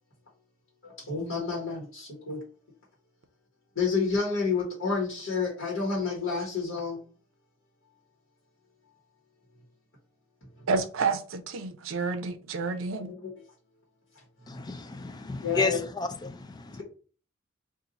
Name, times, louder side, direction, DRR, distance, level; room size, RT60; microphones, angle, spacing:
voice 1, 0.8-2.4 3.7-7.0 13.2-13.3 15.4-15.8, left 4 dB, 70° left, 1.2 m, -29 dB
voice 2, 10.7-13.1, right 4 dB, 90° right, 0.5 m, -29 dB
voice 3, 14.5-16.8, left 3 dB, 20° left, 0.4 m, -32 dB
2.6 x 2.5 x 3.9 m
head